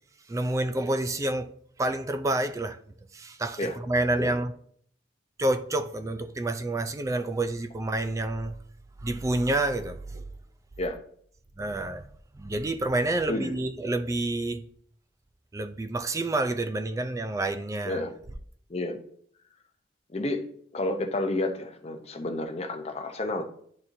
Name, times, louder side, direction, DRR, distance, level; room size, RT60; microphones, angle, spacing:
voice 1, 0.3-1.5 1.8-2.8 3.1-4.5 5.4-8.6 9.0-10.2 11.6-14.7 15.5-18.0, right 2 dB, 15° right, 0.3 m, -28 dB
voice 2, 20.1-20.4 20.7-23.4, left 1 dB, 35° left, 0.7 m, -30 dB
10.5 x 4.2 x 2.6 m
head